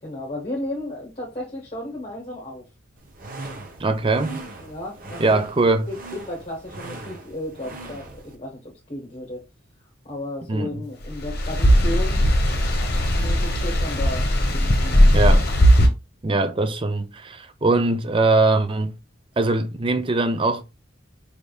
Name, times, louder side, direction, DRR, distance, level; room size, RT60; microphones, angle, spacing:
voice 1, 0.0-2.6 4.6-5.4 5.9-9.4 10.0-12.2 13.1-15.3, left 1 dB, 30° left, 1.2 m, -34 dB
sound 1, 3.0-8.3, right 2 dB, 40° right, 0.8 m, -39 dB
voice 2, 3.8-4.3 5.2-5.9 10.5-10.8 15.1-15.4 16.2-18.9 19.4-20.6, right 3 dB, 25° right, 0.4 m, -21 dB
sound 2, 11.1-15.9, equal, 50° left, 1.0 m, -18 dB
4.9 x 3.4 x 2.3 m
head